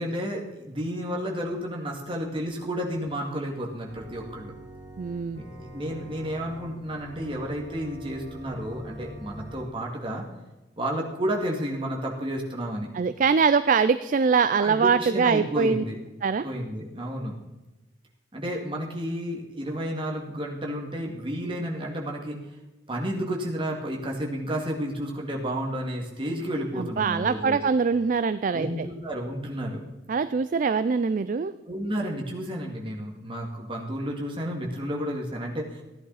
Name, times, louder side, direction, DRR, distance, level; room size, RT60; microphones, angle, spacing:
voice 1, 0.0-4.5 5.4-10.2 10.8-12.9 14.6-16.0 16.4-17.4 18.3-22.4 22.9-27.6 28.5-29.8 31.7-35.8, equal, 30° right, -1 dB, 2.1 m, -31 dB
Organ, 3.8-9.7, equal, 35° left, 4.5 m, -43 dB
voice 2, 5.0-5.4 12.9-15.8 16.2-16.4 26.8-28.9 30.1-31.5, right 5 dB, 45° right, 13 dB, 0.4 m, -23 dB
15.0 x 10.5 x 4.1 m, 1.1 s
head